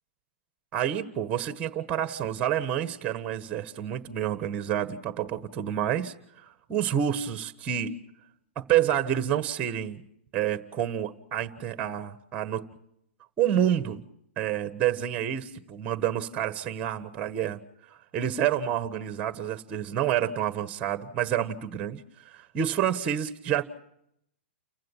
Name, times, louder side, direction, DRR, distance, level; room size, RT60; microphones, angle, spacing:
voice 1, 0.7-7.9 8.5-10.0 10.3-12.6 13.4-14.0 14.4-17.6 18.1-23.6, right 10 dB, 20° right, 10 dB, 1.5 m, -28 dB
29.5 x 15.5 x 7.4 m, 0.73 s
hypercardioid pair, 135°, 6 cm